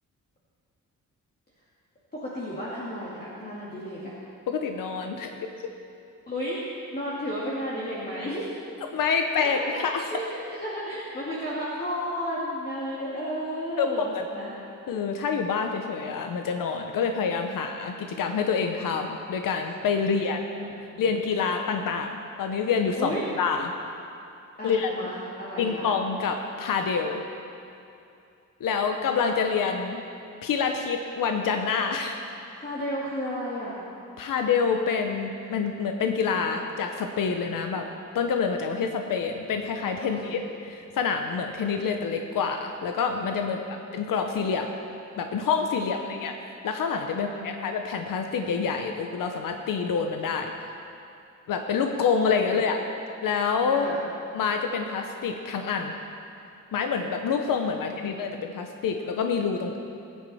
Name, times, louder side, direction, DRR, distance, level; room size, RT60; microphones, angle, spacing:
voice 1, 2.1-4.1 6.3-6.6 6.9-8.5 9.4-9.8 10.1-14.5 20.0-21.1 23.0-23.3 24.6-25.9 32.5-33.8 40.0-40.4 43.4-43.8 45.7-46.1 47.1-47.6 52.4-52.6 53.7-54.0 57.7-58.3, equal, 30° left, -8 dB, 2.3 m, -33 dB
voice 2, 4.5-5.4 8.9-10.0 13.8-14.2 14.9-20.4 21.0-23.7 24.6-24.9 25.6-27.2 28.6-30.0 30.4-32.2 34.2-37.9 38.1-44.7 45.2-46.3 46.6-50.5 51.5-52.8 53.2-53.9 54.3-55.9 56.7-59.8, left 5 dB, 90° left, 4 dB, 0.9 m, -27 dB
21.5 x 9.6 x 4.2 m, 2.6 s
wide cardioid pair, 120°, 32 cm